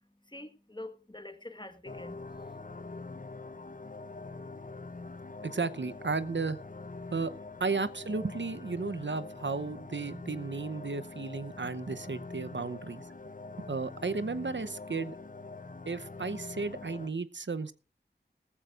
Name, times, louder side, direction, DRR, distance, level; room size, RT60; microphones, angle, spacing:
voice 1, 0.2-2.6, left 1 dB, 25° left, 1.6 m, -46 dB
sound 1, 1.8-17.1, left 3 dB, 45° left, 0.9 m, -44 dB
voice 2, 5.4-6.6 7.1-7.3 7.6-13.0 13.7-15.2 15.9-17.7, right 4 dB, 75° right, 0.8 m, -34 dB
18.0 x 14.5 x 2.5 m
wide cardioid pair, 45°, 19 cm